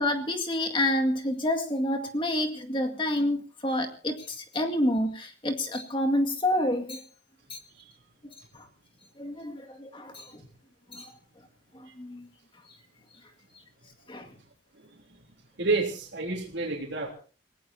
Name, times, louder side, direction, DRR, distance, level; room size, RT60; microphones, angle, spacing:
voice 1, 0.0-7.0 7.5-7.6 8.2-8.7 9.2-10.4 10.9-11.1 11.7-12.3 14.1-14.3, left 1 dB, 30° left, 4 dB, 2.1 m, -28 dB
voice 2, 15.6-17.1, right 3 dB, 85° right, -4 dB, 3.5 m, -29 dB
28.5 x 18.0 x 2.8 m, 0.37 s
head